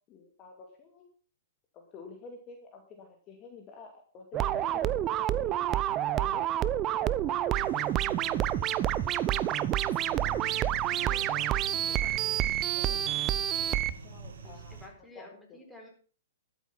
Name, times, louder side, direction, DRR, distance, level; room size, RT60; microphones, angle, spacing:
voice 1, 0.1-1.0 1.7-5.7 6.1-7.7 8.1-8.5 9.3-9.4 10.2-10.5 12.8-13.4 14.0-14.8 15.1-15.6, left 5 dB, 30° left, 2 dB, 2.5 m, -50 dB
sound 1, 4.3-13.9, right 12 dB, 30° right, 0.7 m, -28 dB
sound 2, 7.5-14.9, right 5 dB, 75° right, 2.1 m, -45 dB
voice 2, 11.0-12.6 14.4-15.9, left 1 dB, 5° left, 0 dB, 4.3 m, -52 dB
13.0 x 8.3 x 5.8 m, 0.41 s
hypercardioid pair, 125°, 0 cm